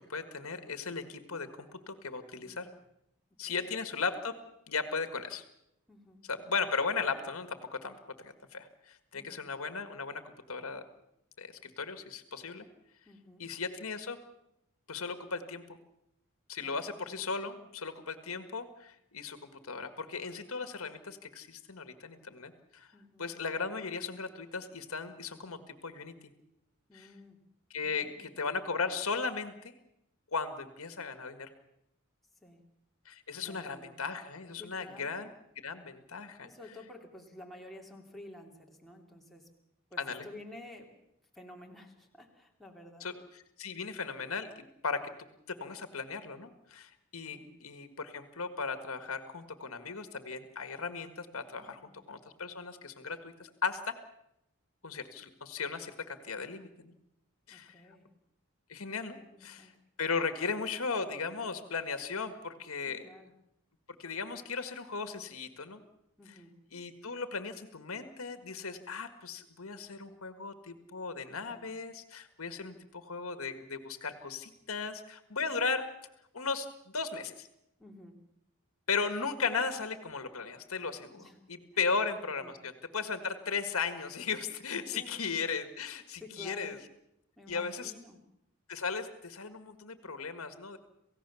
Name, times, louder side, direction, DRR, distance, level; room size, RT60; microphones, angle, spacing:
voice 1, 0.0-2.7 3.4-4.4 4.7-5.4 6.3-10.8 11.4-12.7 13.4-14.2 14.9-15.8 16.5-22.9 23.2-26.1 26.9-27.1 27.7-29.7 30.3-31.5 33.1-35.3 35.6-36.5 40.0-40.3 43.0-51.8 52.1-54.0 54.8-57.0 57.5-57.8 58.7-59.7 60.0-63.0 64.0-65.8 66.7-75.9 76.3-76.7 76.9-77.5 78.9-81.2 81.5-86.8 87.5-87.9 88.7-90.8, left 5 dB, 85° left, 9 dB, 1.7 m, -36 dB
voice 2, 5.9-6.2 9.1-9.4 13.1-13.4 16.6-16.9 22.9-23.3 26.9-27.4 27.8-28.2 32.4-32.6 33.4-33.9 34.6-35.2 36.4-39.5 39.9-40.9 41.3-43.1 47.1-47.5 51.6-51.9 57.5-58.1 59.1-59.7 62.9-63.3 66.2-66.5 71.3-71.7 77.8-78.2 81.1-81.4 81.7-81.9 82.4-82.5 84.9-85.2 86.2-86.7 87.4-88.2, left 1 dB, ahead, -1 dB, 2.9 m, -51 dB
28.0 x 16.5 x 7.0 m, 0.81 s
head